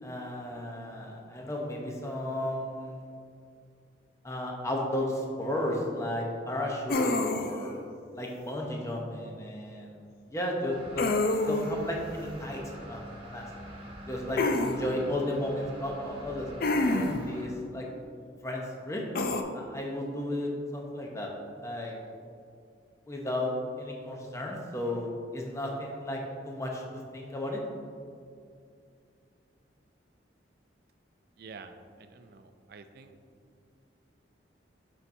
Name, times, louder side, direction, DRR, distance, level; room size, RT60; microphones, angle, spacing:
voice 1, 0.0-3.1 4.2-7.8 8.1-11.1 11.5-13.4 14.1-16.5 16.7-17.9 18.4-19.0 19.5-21.3 21.6-21.9 23.1-23.5 23.8-27.6, left 1 dB, 15° left, -1 dB, 0.7 m, -34 dB
sound 1, 6.9-7.7 11.0-11.8 14.4-14.7 16.6-17.3 19.1-19.4, left 2 dB, 50° left, 0.4 m, -27 dB
sound 2, 10.7-17.5, equal, 30° right, 0.9 m, -45 dB
voice 2, 31.4-33.1, right 4 dB, 55° right, 8 dB, 0.4 m, -49 dB
7.0 x 5.5 x 2.6 m, 2.4 s
head